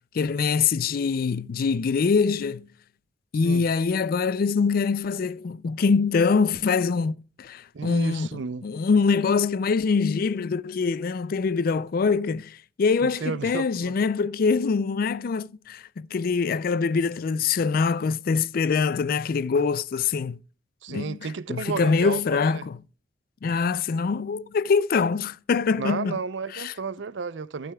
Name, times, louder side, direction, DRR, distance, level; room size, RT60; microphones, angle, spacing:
voice 1, 0.1-2.7 3.3-20.4 20.9-21.2 21.5-22.8 23.4-26.2 26.5-26.7, left 5 dB, 50° left, 0.4 m, -24 dB
voice 2, 7.7-8.7 13.0-14.0 20.8-22.7 25.8-27.7, right 5 dB, 75° right, 0.5 m, -33 dB
12.0 x 12.0 x 2.3 m
head